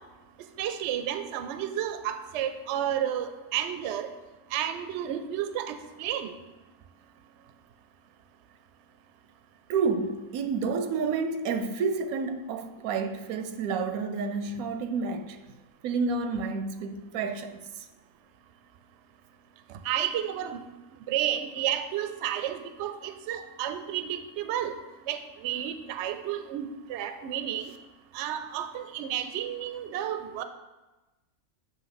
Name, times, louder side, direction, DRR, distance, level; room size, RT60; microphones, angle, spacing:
voice 1, 0.6-4.1 4.5-6.3 19.8-20.6 21.1-24.7 25.1-27.7 28.1-30.4, right 10 dB, 65° right, 0.7 m, -31 dB
voice 2, 9.7-15.4 15.8-17.9, right 4 dB, 85° right, 1.0 m, -30 dB
7.6 x 3.0 x 5.8 m
omnidirectional pair, 1.5 m